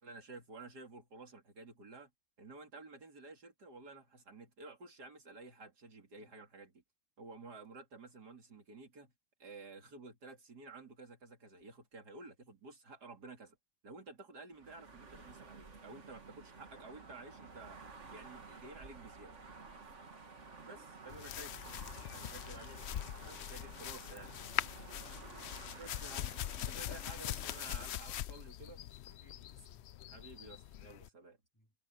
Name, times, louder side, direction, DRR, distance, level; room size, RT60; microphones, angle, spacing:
voice 1, 0.0-2.1 2.4-6.8 7.2-9.1 9.4-13.6 13.8-17.8 18.1-19.3 20.7-21.5 22.1-22.8 23.3-24.3 25.8-26.4 26.7-28.8 30.1-31.4, right 3 dB, 80° right, 3.5 m, -52 dB
sound 1, 14.5-27.8, right 4 dB, 50° right, 2.3 m, -53 dB
sound 2, 21.1-31.1, left 12 dB, 85° left, 0.5 m, -42 dB
voice 2, 25.1-26.1 29.1-29.9 31.5-31.7, equal, 10° left, 4.3 m, -67 dB
omnidirectional pair, 1.7 m